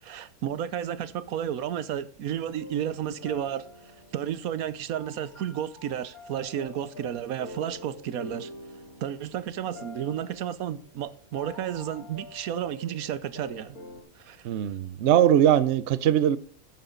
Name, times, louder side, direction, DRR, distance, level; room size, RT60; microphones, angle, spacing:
voice 1, 0.0-8.5 9.0-13.8 14.2-14.5, right 10 dB, 80° right, 1.2 m, -32 dB
sound 1, 2.5-14.0, left 1 dB, 85° left, 3.8 m, -46 dB
voice 2, 14.4-16.4, right 10 dB, 60° right, 0.8 m, -21 dB
11.0 x 9.1 x 3.8 m
omnidirectional pair, 1.5 m